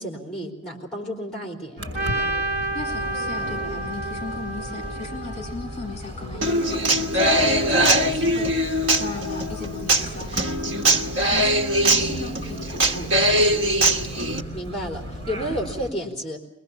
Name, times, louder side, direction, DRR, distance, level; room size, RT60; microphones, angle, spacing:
voice 1, 0.0-1.9 14.1-14.2 14.5-16.4, equal, 5° left, 0 dB, 3.9 m, -31 dB
sound 1, 1.8-15.9, equal, 65° right, 5.9 m, -35 dB
Trumpet, 1.9-6.1, right 2 dB, 40° right, 1.8 m, -30 dB
voice 2, 2.7-13.7, left 3 dB, 35° left, 1 dB, 2.8 m, -37 dB
Human voice / Acoustic guitar, 6.4-14.4, right 1 dB, 85° right, 1.5 m, -21 dB
23.0 x 21.0 x 7.1 m, 0.81 s
head